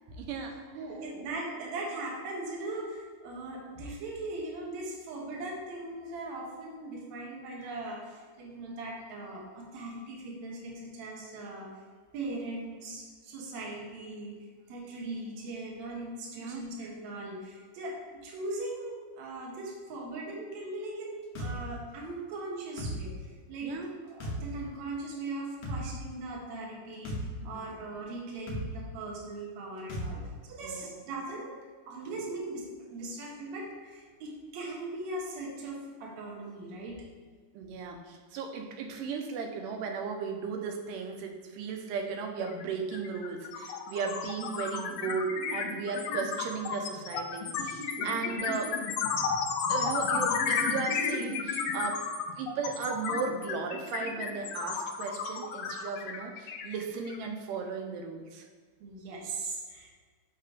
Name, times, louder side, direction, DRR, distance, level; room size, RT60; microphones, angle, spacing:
voice 1, 0.2-0.7 16.4-16.6 23.6-23.9 27.5-27.6 30.6-30.9 32.1-32.3 37.5-48.8 49.7-52.1 52.4-58.5, right 5 dB, 85° right, 3 dB, 2.3 m, -36 dB
voice 2, 0.7-11.8 12.1-14.4 14.7-23.7 24.0-31.6 31.9-37.1 48.0-48.5 58.8-59.9, right 2 dB, 65° right, -2 dB, 2.2 m, -39 dB
sound 1, 21.4-21.5 22.8-23.0 24.2-24.4 25.6-25.8 27.0-27.2 28.5-28.7 29.9-30.1, equal, 65° left, 1.5 m, -34 dB
sound 2, 42.5-42.6 42.9-57.3, left 5 dB, 80° left, 1.5 m, -32 dB
8.0 x 2.9 x 5.0 m, 1.5 s
omnidirectional pair, 3.7 m